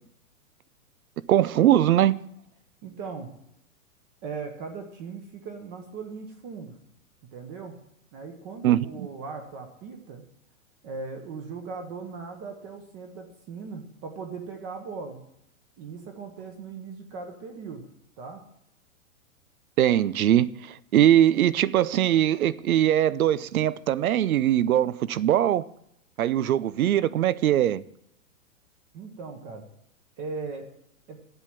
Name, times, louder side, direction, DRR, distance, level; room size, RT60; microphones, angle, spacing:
voice 1, 1.3-2.1 8.6-9.1 19.8-25.7 26.2-27.8, right 11 dB, 85° right, 18 dB, 0.7 m, -21 dB
voice 2, 2.8-3.3 4.2-6.7 7.3-7.8 8.1-10.2 10.8-15.2 15.8-17.9 18.2-18.4 28.9-29.6 30.2-30.7 31.1-31.2, right 4 dB, 25° right, 4 dB, 1.0 m, -38 dB
8.0 x 7.8 x 8.7 m, 0.76 s
hypercardioid pair, 160°, 42 cm